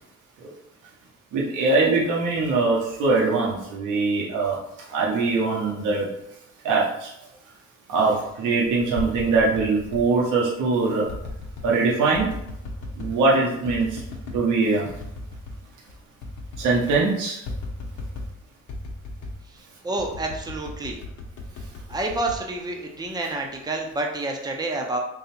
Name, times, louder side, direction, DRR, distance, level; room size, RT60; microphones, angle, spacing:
voice 1, 1.3-4.6 4.9-6.1 6.6-7.1 7.9-11.1 11.6-12.3 13.0-14.0 14.3-14.9 16.6-17.4, right 3 dB, 85° right, -4 dB, 1.1 m, -22 dB
sound 1, 8.7-10.1 11.1-11.7 12.1-13.2 13.6-14.4 14.9-15.6 15.9-16.0 16.2-17.0 17.5-18.4 18.7-19.4 20.0-23.1 23.5-23.9, left 2 dB, 75° left, 1.0 m, -36 dB
voice 2, 19.8-21.0 21.9-25.0, right 2 dB, 15° right, 1 dB, 0.7 m, -28 dB
3.8 x 2.4 x 4.3 m, 0.81 s
cardioid pair, 90°, 30 cm